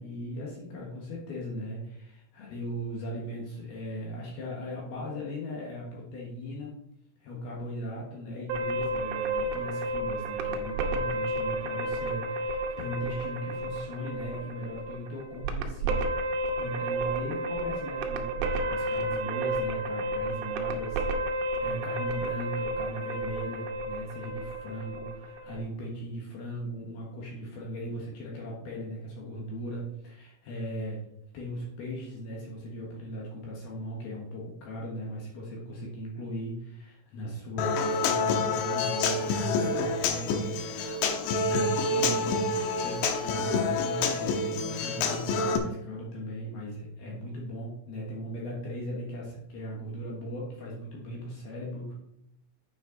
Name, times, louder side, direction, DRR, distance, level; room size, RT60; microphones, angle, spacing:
voice 1, 0.0-6.8 7.2-31.0 31.3-40.4 41.1-42.4 42.8-51.9, equal, 65° left, -3 dB, 2.9 m, -38 dB
sound 1, 8.5-25.6, right 1 dB, 80° right, 3.1 m, -32 dB
Human voice / Acoustic guitar, 37.6-45.6, left 3 dB, 80° left, 2.9 m, -28 dB
9.2 x 6.4 x 3.9 m, 0.78 s
omnidirectional pair, 5.8 m